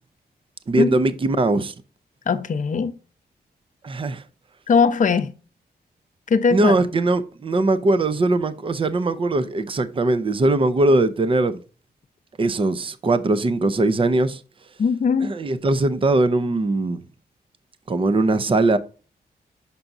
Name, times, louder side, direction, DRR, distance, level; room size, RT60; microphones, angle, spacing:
voice 1, 0.7-1.7 3.8-4.2 6.5-11.6 12.4-14.4 15.2-17.0 17.9-18.8, right 2 dB, 30° right, 0.6 m, -20 dB
voice 2, 2.3-2.9 4.7-5.3 6.3-6.9 14.8-15.3, left 5 dB, 50° left, 0.7 m, -20 dB
6.8 x 5.9 x 2.6 m
cardioid pair, 100°, 17 cm